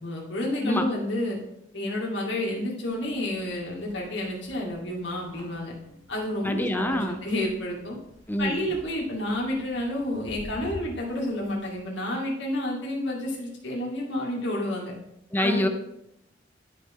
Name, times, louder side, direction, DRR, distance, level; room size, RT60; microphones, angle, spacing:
voice 1, 0.0-1.4 1.7-5.7 6.1-8.0 8.4-14.9 15.4-15.7, left 1 dB, 85° left, -3 dB, 2.4 m, -30 dB
sound 1, 2.8-11.8, left 1 dB, 85° right, 3.1 m, -48 dB
voice 2, 6.4-7.2 8.3-8.5 15.3-15.7, left 1 dB, 10° left, 6 dB, 0.7 m, -25 dB
11.5 x 5.4 x 3.7 m, 0.80 s
head